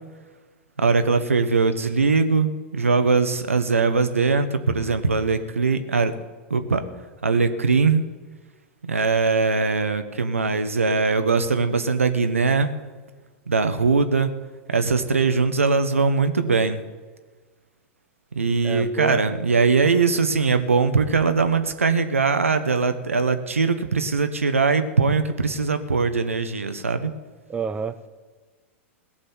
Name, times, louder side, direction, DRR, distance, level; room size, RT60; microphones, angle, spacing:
voice 1, 0.8-6.1 6.5-6.8 7.2-8.0 8.8-12.7 13.5-14.3 14.7-16.8 18.3-27.1, right 4 dB, 85° right, 9 dB, 1.1 m, -21 dB
voice 2, 18.6-19.2 27.5-28.1, right 6 dB, 15° right, 10 dB, 0.9 m, -29 dB
17.5 x 6.7 x 9.3 m, 1.4 s
figure-of-eight pair, 100°, 7 cm